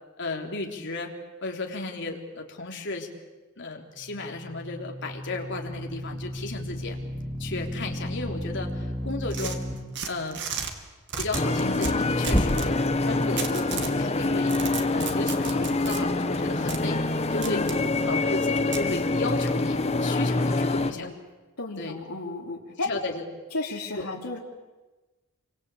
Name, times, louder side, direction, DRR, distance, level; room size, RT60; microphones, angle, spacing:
voice 1, 0.2-1.1 1.4-3.1 3.6-7.0 7.4-9.7 10.1-10.4 11.2-12.8 13.0-14.5 14.9-17.0 17.3-17.6 18.0-21.1 21.8-22.0 22.8-23.2 24.0-24.1, left 2 dB, 55° left, 2 dB, 3.6 m, -34 dB
sound 1, 3.9-9.7 12.3-13.0, equal, 10° left, 3.0 m, -32 dB
sound 2, 9.3-10.7 11.1-12.7 13.4-14.0 14.3-16.0 16.7-16.8 17.4-17.8 18.7-18.9, right 6 dB, 55° right, 2.6 m, -34 dB
sound 3, 11.3-20.9, left 2 dB, 30° left, 1.2 m, -26 dB
voice 2, 17.4-17.9 20.4-21.1 21.6-22.9 23.5-24.4, left 2 dB, 85° left, -2 dB, 3.2 m, -34 dB
28.0 x 24.5 x 8.6 m, 1.2 s
head